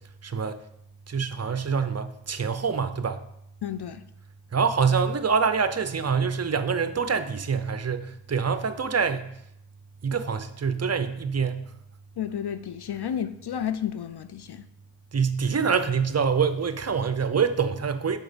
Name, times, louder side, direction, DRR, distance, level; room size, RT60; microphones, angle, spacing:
voice 1, 0.2-0.6 1.1-3.2 4.5-9.3 10.0-11.7 15.1-18.2, right 6 dB, 35° right, 0.6 m, -25 dB
voice 2, 3.6-4.0 12.2-14.7, left 9 dB, 55° left, 0.5 m, -31 dB
6.0 x 4.4 x 5.1 m
cardioid pair, 50°, 48 cm